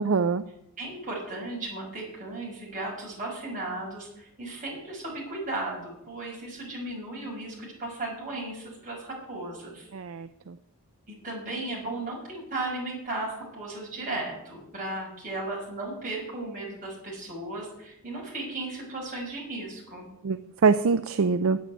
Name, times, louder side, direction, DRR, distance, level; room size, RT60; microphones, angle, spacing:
voice 1, 0.1-0.4 9.9-10.6 20.2-21.6, right 5 dB, 60° right, 12 dB, 0.5 m, -24 dB
voice 2, 0.8-9.9 11.1-20.1, right 2 dB, 35° right, -3 dB, 6.1 m, -35 dB
9.4 x 8.6 x 9.4 m, 0.80 s
head